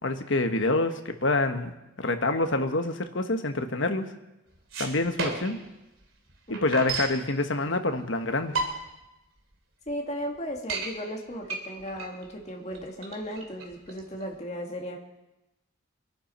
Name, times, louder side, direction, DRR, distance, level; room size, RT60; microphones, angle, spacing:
voice 1, 0.0-1.7 2.0-4.1 4.8-5.6 6.5-8.6, left 2 dB, 65° left, 7 dB, 1.3 m, -26 dB
sound 1, 4.5-5.7 6.0-6.1 6.3-7.2 8.0-8.1 8.4-9.0 9.5-9.6 9.9-10.0 10.4-10.9 11.4-14.3, right 3 dB, 80° right, 2.7 m, -32 dB
voice 2, 9.9-15.0, equal, 35° left, 0 dB, 2.1 m, -36 dB
25.0 x 11.0 x 4.4 m, 0.97 s
head